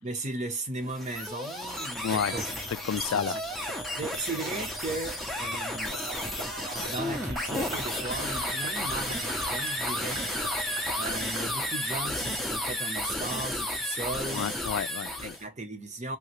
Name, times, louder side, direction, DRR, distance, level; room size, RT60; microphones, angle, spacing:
voice 1, 0.0-2.5 3.0-3.4 4.0-6.0 6.9-10.3 10.9-14.5 15.2-16.2, right 2 dB, 35° right, 0.7 m, -36 dB
sound 1, 0.8-15.4, left 1 dB, ahead, 0.5 m, -33 dB
voice 2, 2.0-3.4 14.3-15.4, left 8 dB, 70° left, 0.3 m, -31 dB
sound 2, 2.3-11.3, right 3 dB, 90° right, 1.5 m, -45 dB
sound 3, 5.9-11.8, right 2 dB, 70° right, 1.4 m, -43 dB
3.0 x 2.5 x 2.9 m
head